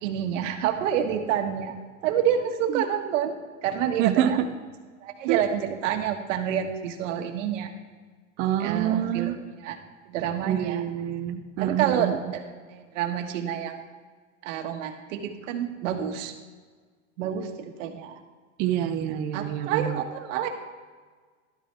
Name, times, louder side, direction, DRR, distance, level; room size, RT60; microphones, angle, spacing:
voice 1, 0.0-1.7 2.0-4.4 5.0-7.7 8.6-9.3 9.6-9.8 10.1-10.8 11.6-13.8 14.4-16.3 17.2-18.2 19.3-20.5, right 9 dB, 70° right, 4 dB, 1.6 m, -28 dB
voice 2, 4.0-4.5 5.3-5.4 8.4-9.4 10.4-12.2 18.6-20.0, right 11 dB, 25° right, 5 dB, 0.4 m, -26 dB
12.5 x 12.0 x 3.4 m, 1.5 s
supercardioid pair, 155°, 39 cm